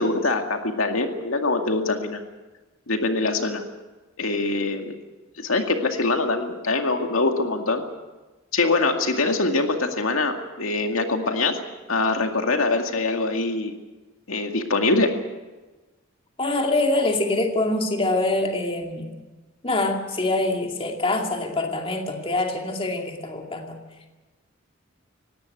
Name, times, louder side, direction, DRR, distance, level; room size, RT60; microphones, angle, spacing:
voice 1, 0.0-2.2 2.9-3.6 4.2-4.9 5.4-7.8 8.5-11.6 11.9-13.7 14.3-15.1, left 3 dB, 90° left, 4 dB, 2.2 m, -23 dB
voice 2, 16.4-19.1 19.6-23.8, left 2 dB, 25° left, 2 dB, 2.4 m, -24 dB
19.0 x 17.0 x 9.2 m, 1.2 s
head